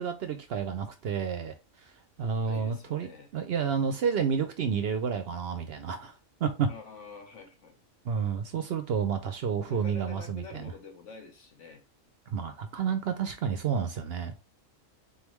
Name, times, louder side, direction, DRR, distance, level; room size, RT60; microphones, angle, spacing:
voice 1, 0.0-1.5 2.2-6.1 6.4-6.7 8.0-10.7 12.3-14.3, right 6 dB, 60° right, 0.7 m, -30 dB
voice 2, 2.4-3.3 6.7-7.8 9.7-11.8, left 5 dB, 65° left, 1.3 m, -47 dB
4.1 x 3.5 x 3.0 m
omnidirectional pair, 1.3 m